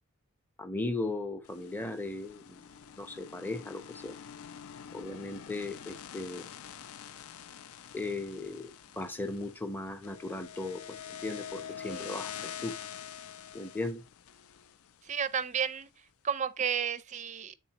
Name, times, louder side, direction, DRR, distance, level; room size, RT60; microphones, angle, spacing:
voice 1, 0.6-2.7 3.0-4.2 4.9-6.5 7.9-12.8 13.5-14.0, left 2 dB, 10° left, 0.6 m, -37 dB
sound 1, 1.4-15.6, left 9 dB, 70° left, 0.4 m, -46 dB
voice 2, 15.0-15.9 16.2-17.5, right 7 dB, 35° right, 0.5 m, -32 dB
8.9 x 3.9 x 2.9 m
head